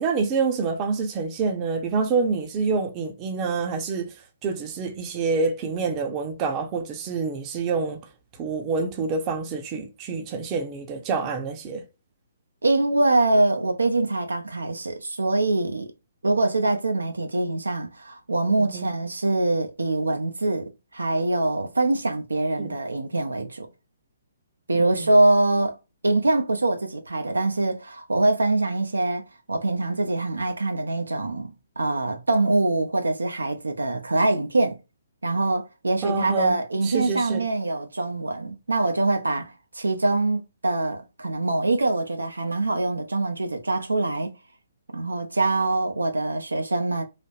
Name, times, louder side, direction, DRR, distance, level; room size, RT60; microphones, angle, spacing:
voice 1, 0.0-4.1 4.4-8.1 8.4-11.8 18.6-18.9 22.6-22.8 24.8-25.1 36.0-37.4, right 4 dB, 30° right, 0.6 m, -27 dB
voice 2, 12.6-15.9 16.2-23.7 24.7-25.8 26.0-34.8 35.2-44.3 44.9-47.0, right 2 dB, 85° right, 0.6 m, -24 dB
3.2 x 2.0 x 2.4 m
figure-of-eight pair, 135°, 0 cm